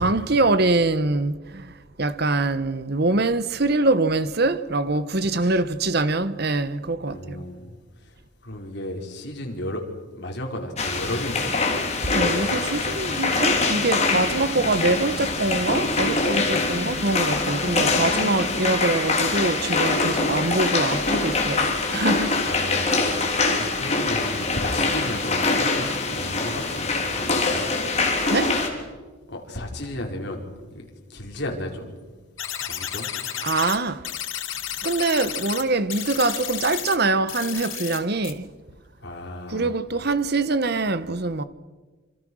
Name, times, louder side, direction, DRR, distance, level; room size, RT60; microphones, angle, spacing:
voice 1, 0.0-7.4 12.1-22.6 28.3-28.6 33.4-34.1 34.8-38.5 39.5-41.4, right 2 dB, 50° right, 1.2 m, -24 dB
voice 2, 7.1-7.8 8.1-8.2 8.4-9.8 10.1-11.9 22.4-27.8 29.3-30.4 30.7-31.9 32.7-33.1 39.0-39.7, left 1 dB, 55° left, 5.1 m, -34 dB
sound 1, 10.8-28.7, left 3 dB, 30° left, 3.9 m, -24 dB
sound 2, 32.4-33.8 34.0-35.6 35.9-36.9 37.3-38.0 38.2-38.3, left 11 dB, 75° left, 2.9 m, -32 dB
27.5 x 27.5 x 6.4 m
head